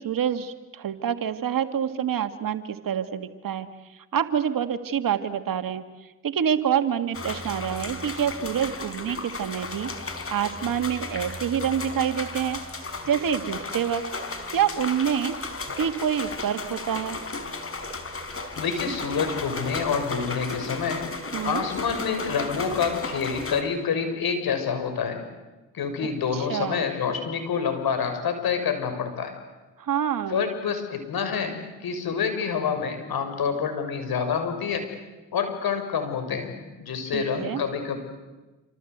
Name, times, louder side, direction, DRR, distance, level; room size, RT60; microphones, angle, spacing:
voice 1, 0.0-3.7 3.9-9.9 10.3-12.6 13.1-14.0 14.5-15.4 15.8-17.2 21.3-21.7 26.3-26.8 29.8-30.5 37.1-37.6, right 8 dB, 55° right, 9 dB, 2.1 m, -27 dB
sound 1, 7.1-23.6, left 3 dB, 30° left, 4.5 m, -34 dB
voice 2, 18.6-21.0 21.4-25.2 25.7-29.3 30.3-31.5 31.8-34.8 35.3-38.0, left 6 dB, 60° left, 7 dB, 6.4 m, -27 dB
27.5 x 26.0 x 8.2 m, 1.1 s
hypercardioid pair, 55°, 41 cm